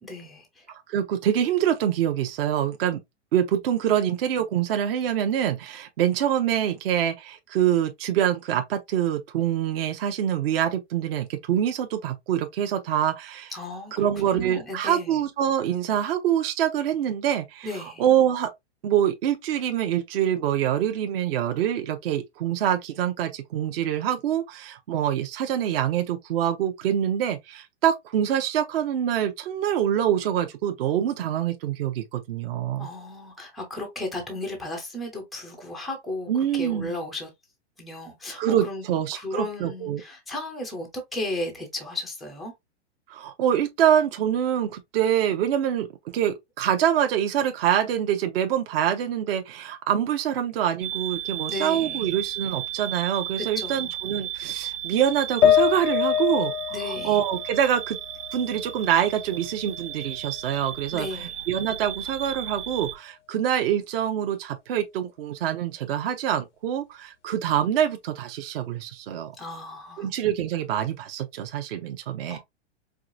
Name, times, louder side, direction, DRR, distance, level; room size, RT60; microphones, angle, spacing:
voice 1, 0.0-0.7 13.5-15.2 17.6-18.0 32.8-37.3 37.8-38.8 39.1-42.5 51.5-52.1 53.4-53.9 56.7-57.2 60.9-61.4 69.4-70.1 72.3-72.4, left 2 dB, ahead, 0.3 m, -35 dB
voice 2, 0.9-3.0 3.3-13.5 14.0-17.7 18.0-18.5 18.8-32.9 36.3-36.9 38.4-40.0 43.1-45.9 46.1-58.0 58.3-61.1 61.5-69.3 70.0-72.4, right 10 dB, 55° right, 0.7 m, -25 dB
sound 1, 50.8-63.0, right 11 dB, 85° right, 0.7 m, -35 dB
sound 2, 55.4-58.8 59.2-60.2, left 10 dB, 85° left, 0.6 m, -25 dB
4.7 x 2.3 x 2.5 m
hypercardioid pair, 145°, 35 cm